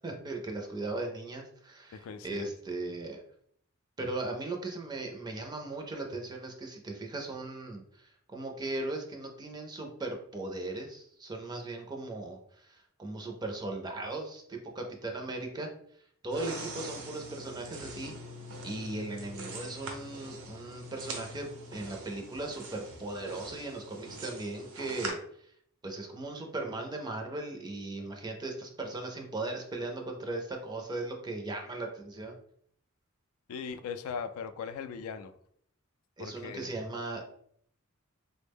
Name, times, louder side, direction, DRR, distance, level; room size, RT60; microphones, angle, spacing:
voice 1, 0.0-3.2 4.0-15.7 16.2-18.1 18.6-25.5 25.8-32.3 36.2-37.2, right 2 dB, 20° right, 2 dB, 0.4 m, -38 dB
voice 2, 1.9-2.5 33.5-35.3 36.2-36.7, left 6 dB, 85° left, 9 dB, 0.3 m, -39 dB
sound 1, 16.3-25.1, right 2 dB, 90° right, 0.8 m, -43 dB
3.4 x 2.1 x 3.4 m, 0.66 s
head